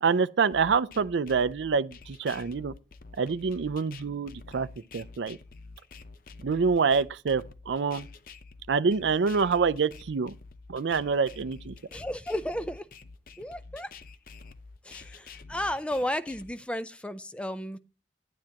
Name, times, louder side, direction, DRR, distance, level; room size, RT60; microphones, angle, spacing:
voice 1, 0.0-2.7 3.2-4.7 4.9-5.4 6.4-8.1 8.7-10.3 10.7-11.7, right 5 dB, 85° right, 0.5 m, -26 dB
sound 1, 0.5-16.5, left 4 dB, 50° left, 0.7 m, -48 dB
voice 2, 11.9-12.8 13.4-13.9 14.8-17.8, left 1 dB, 5° left, 0.5 m, -33 dB
10.5 x 9.6 x 2.9 m
head